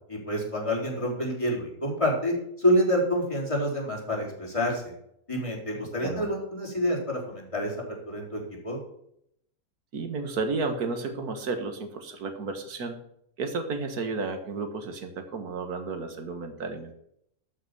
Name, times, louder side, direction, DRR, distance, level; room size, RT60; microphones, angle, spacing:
voice 1, 0.1-4.9 5.3-7.7 8.1-8.8, equal, 20° left, -3 dB, 4.1 m, -27 dB
voice 2, 5.7-6.3 9.9-13.0 13.4-16.9, right 4 dB, 85° right, 6 dB, 2.0 m, -32 dB
13.0 x 6.0 x 6.9 m, 0.72 s
omnidirectional pair, 1.6 m